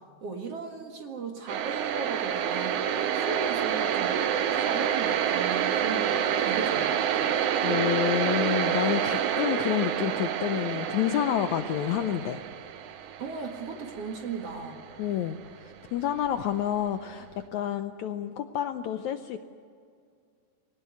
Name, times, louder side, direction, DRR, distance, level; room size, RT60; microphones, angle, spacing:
voice 1, 0.2-4.1 4.5-7.3 13.2-14.8, right 4 dB, 50° right, 3 dB, 2.5 m, -37 dB
sound 1, 1.5-15.3, right 9 dB, 75° right, 1.5 m, -28 dB
voice 2, 7.6-12.4 15.0-19.4, left 10 dB, 75° left, 8 dB, 1.8 m, -29 dB
21.0 x 19.0 x 9.6 m, 2.3 s
omnidirectional pair, 4.0 m